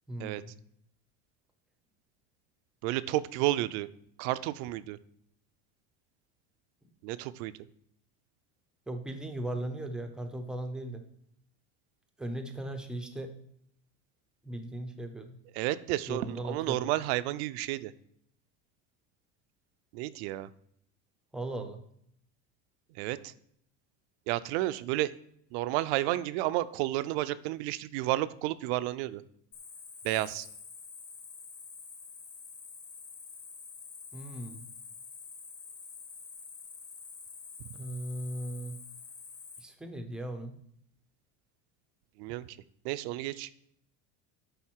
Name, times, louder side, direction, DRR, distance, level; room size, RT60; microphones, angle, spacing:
voice 1, 0.1-0.5 8.9-11.0 12.2-13.3 14.4-15.4 16.1-16.9 21.3-21.8 34.1-34.6 37.7-38.8 39.6-40.5, right 1 dB, ahead, 6 dB, 0.5 m, -38 dB
voice 2, 2.8-3.9 4.2-5.0 7.0-7.5 15.5-17.9 19.9-20.5 22.9-23.3 24.3-25.1 25.5-29.2 30.0-30.5 37.7-37.8 42.2-42.6 42.8-43.5, right 16 dB, 70° right, 15 dB, 0.5 m, -31 dB
Cricket, 29.5-39.6, left 5 dB, 30° left, 1.1 m, -47 dB
10.5 x 4.0 x 4.5 m, 0.70 s
cardioid pair, 165°, 34 cm